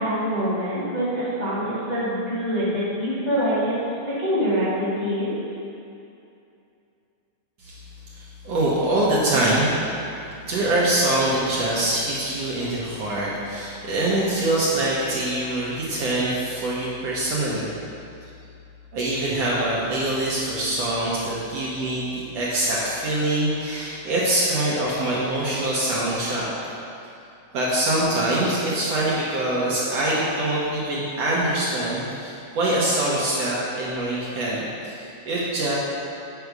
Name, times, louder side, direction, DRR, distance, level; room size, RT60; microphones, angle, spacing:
voice 1, 0.0-3.7 4.0-5.3, equal, 20° left, -10 dB, 1.1 m, -25 dB
voice 2, 8.1-9.7 10.4-17.7 18.9-26.4 27.5-35.7, right 1 dB, 65° right, -7 dB, 1.8 m, -24 dB
8.1 x 5.3 x 4.7 m, 2.6 s
omnidirectional pair, 3.7 m